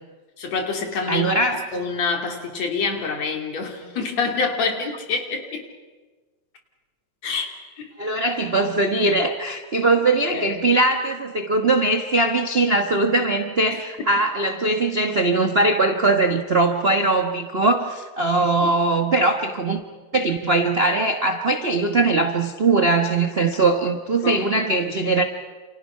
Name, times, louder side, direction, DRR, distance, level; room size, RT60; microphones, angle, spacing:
voice 1, 0.4-1.4 1.7-5.7 7.2-7.9 10.3-10.5 18.3-18.7 24.2-24.5, left 4 dB, 65° left, 4 dB, 3.9 m, -27 dB
voice 2, 1.1-1.7 8.0-19.8 20.1-25.2, right 2 dB, 50° right, 5 dB, 0.6 m, -21 dB
28.5 x 28.0 x 5.7 m, 1.3 s
omnidirectional pair, 3.3 m